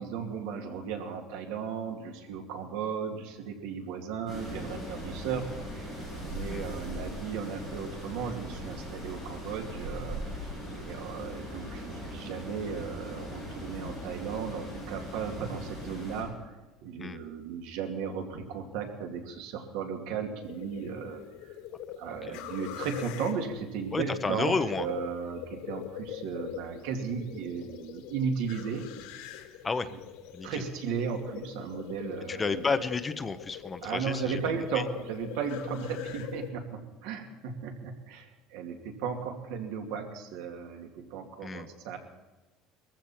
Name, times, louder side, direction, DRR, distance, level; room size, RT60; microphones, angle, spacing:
voice 1, 0.0-5.9 6.3-16.5 16.8-21.2 22.0-28.9 30.4-32.6 33.8-42.0, right 6 dB, 80° right, 4 dB, 2.5 m, -35 dB
sound 1, 4.3-16.2, equal, 15° right, 7.2 m, -39 dB
sound 2, 20.4-36.5, left 10 dB, 90° left, 2.0 m, -43 dB
voice 2, 23.9-24.9 29.6-29.9 30.3-30.6 32.3-34.4 34.7-34.8 41.4-41.7, left 4 dB, 15° left, 10 dB, 0.7 m, -31 dB
21.0 x 15.0 x 4.4 m, 1.2 s
cardioid pair, 180°, 0 cm